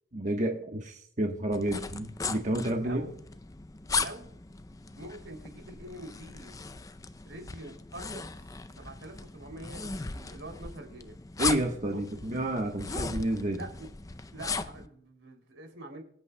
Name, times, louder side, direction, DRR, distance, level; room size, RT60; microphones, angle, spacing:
voice 1, 0.1-3.1 11.4-13.6, right 1 dB, 40° right, 2 dB, 1.2 m, -30 dB
sound 1, 1.5-14.9, left 4 dB, 20° left, 0.5 m, -37 dB
voice 2, 2.8-3.1 4.0-4.3 5.0-6.5 7.3-11.2 11.9-12.0 13.5-13.9 14.3-16.0, right 1 dB, 85° right, 3 dB, 3.0 m, -45 dB
25.0 x 8.6 x 2.2 m, 0.65 s
head